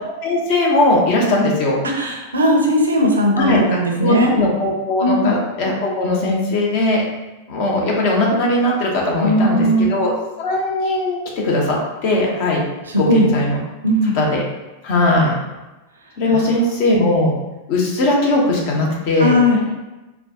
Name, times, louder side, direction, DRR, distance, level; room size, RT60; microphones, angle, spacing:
voice 1, 0.2-1.8 3.4-3.6 4.0-7.0 7.5-12.6 13.0-13.6 14.0-14.4 14.8-15.3 16.2-17.3 17.7-19.3, left 1 dB, 45° left, -2 dB, 0.9 m, -19 dB
voice 2, 1.9-4.3 5.0-5.4 9.2-9.9 12.9-13.3 13.8-14.2 16.3-16.4 19.2-19.7, equal, 75° right, 2 dB, 0.6 m, -17 dB
4.2 x 2.3 x 2.7 m, 1.1 s
figure-of-eight pair, 90°, 0 cm